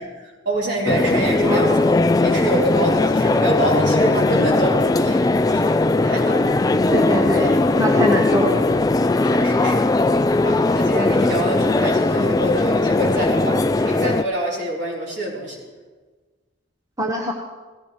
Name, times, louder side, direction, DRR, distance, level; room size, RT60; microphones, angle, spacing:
voice 1, 0.0-2.0 2.2-5.7 6.0-6.6 9.2-9.9 10.4-15.6, right 1 dB, 65° right, -4 dB, 3.9 m, -26 dB
sound 1, 0.9-14.2, left 2 dB, 20° left, 0.3 m, -19 dB
voice 2, 1.4-1.8 6.9-7.5 7.8-8.6 17.0-17.3, equal, 20° right, 0 dB, 0.9 m, -22 dB
17.0 x 15.0 x 3.2 m, 1.3 s
head